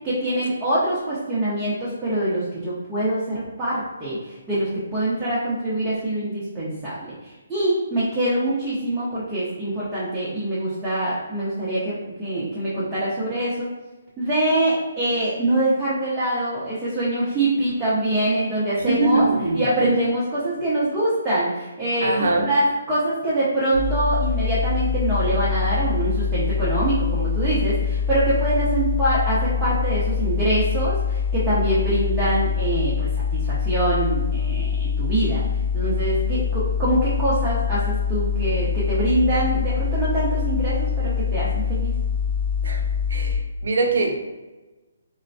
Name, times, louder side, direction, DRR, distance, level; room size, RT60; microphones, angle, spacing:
voice 1, 0.0-7.1 7.5-13.7 14.2-19.3 19.5-35.4 35.7-41.9, right 1 dB, 10° right, -10 dB, 0.8 m, -24 dB
voice 2, 18.9-20.0 22.0-22.5 42.6-42.8 43.1-44.2, right 2 dB, 70° right, 2 dB, 0.6 m, -22 dB
sound 1, 23.7-43.4, left 6 dB, 85° left, 0.8 m, -24 dB
3.8 x 2.1 x 2.6 m, 1.1 s
hypercardioid pair, 160°, 0 cm